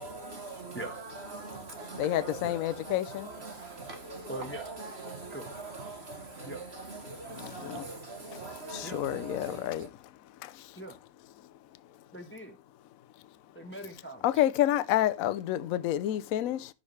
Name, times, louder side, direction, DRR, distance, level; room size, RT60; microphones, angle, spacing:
voice 1, 0.0-9.9, right 3 dB, 40° right, 1.3 m, -42 dB
voice 2, 2.0-3.3 7.4-7.8 8.7-9.9 14.2-16.7, left 12 dB, 65° left, 0.9 m, -29 dB
voice 3, 4.3-4.7 5.3-5.4 6.4-6.6 8.8-9.1 10.8-11.0 12.1-12.6 13.5-14.2, right 1 dB, 10° left, 1.1 m, -41 dB
15.0 x 5.1 x 3.2 m
omnidirectional pair, 1.8 m